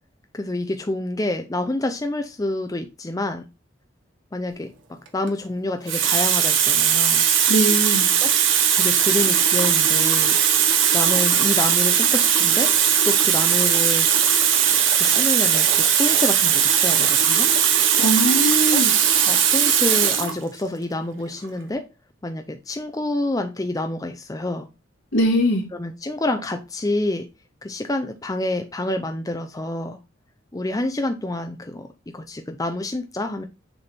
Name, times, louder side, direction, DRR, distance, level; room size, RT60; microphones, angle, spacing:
voice 1, 0.3-3.5 4.3-7.2 8.2-8.3 8.7-10.4 10.9-12.7 13.0-14.1 14.9-17.5 18.7-18.8 19.3-21.8 22.2-24.7 25.7-27.3 27.6-30.0 30.5-31.9 32.1-33.4, left 2 dB, 20° left, 0.5 m, -27 dB
Water tap faucet, 5.1-5.3 5.9-20.4 21.3-21.4, right 8 dB, 75° right, 1.0 m, -18 dB
voice 2, 7.5-8.1 18.0-18.9 25.1-25.7, equal, 75° left, 2.2 m, -21 dB
6.8 x 3.5 x 4.2 m
head